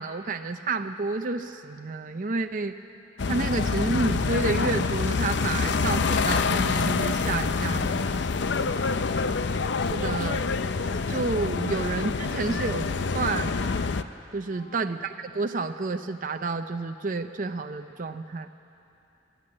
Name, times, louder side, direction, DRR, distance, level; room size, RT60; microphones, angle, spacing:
voice 1, 0.0-2.8 3.3-8.1 9.9-10.5 11.1-12.9 13.1-13.8 14.3-18.5, right 3 dB, 45° right, 6 dB, 0.6 m, -30 dB
sound 1, 3.2-14.0, left 4 dB, 60° left, 0.5 m, -26 dB
voice 2, 8.4-9.5 11.6-11.8 12.1-12.8 14.5-15.0, left 2 dB, 35° left, 0 dB, 2.2 m, -49 dB
27.0 x 12.0 x 8.7 m, 2.8 s
head